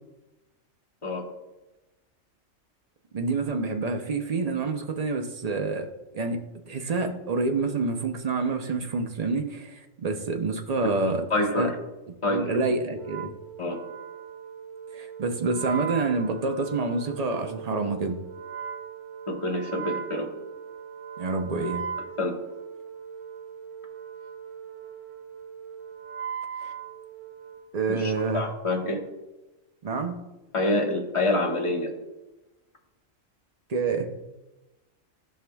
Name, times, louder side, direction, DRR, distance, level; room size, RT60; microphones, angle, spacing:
voice 1, 3.1-5.9 6.1-11.3 11.6-11.7 12.1-13.3 14.9-18.2 21.2-21.9 26.6-26.7 27.7-28.5 29.8-30.2 33.7-34.1, right 3 dB, 40° right, 5 dB, 0.6 m, -28 dB
voice 2, 11.3-11.7 12.2-12.5 13.6-13.8 19.3-20.3 22.2-22.4 27.9-29.0 30.5-31.9, left 1 dB, 25° left, 1 dB, 1.0 m, -26 dB
Wind instrument woodwind instrument, 13.0-27.7, right 7 dB, 70° right, 0.9 m, -39 dB
13.0 x 5.6 x 2.3 m, 1.0 s
omnidirectional pair, 1.4 m